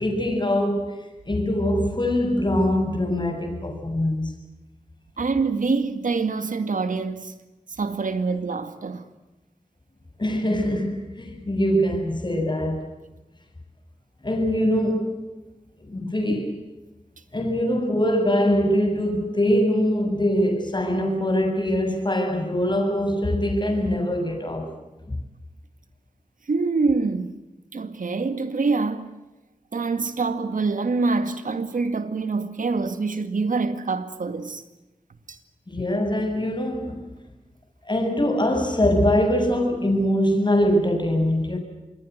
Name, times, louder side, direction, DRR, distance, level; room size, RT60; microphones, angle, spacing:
voice 1, 0.0-4.3 10.2-12.9 14.2-15.2 15.9-16.7 17.3-24.7 35.7-37.0 37.9-41.6, equal, 35° left, 7.1 m, -23 dB
voice 2, 5.2-7.3 7.8-9.0 26.5-27.3 27.7-29.1 29.7-34.6 35.3-35.4, right 4 dB, 85° right, 2.1 m, -25 dB
27.0 x 21.5 x 8.2 m
wide cardioid pair, 65°, 13 cm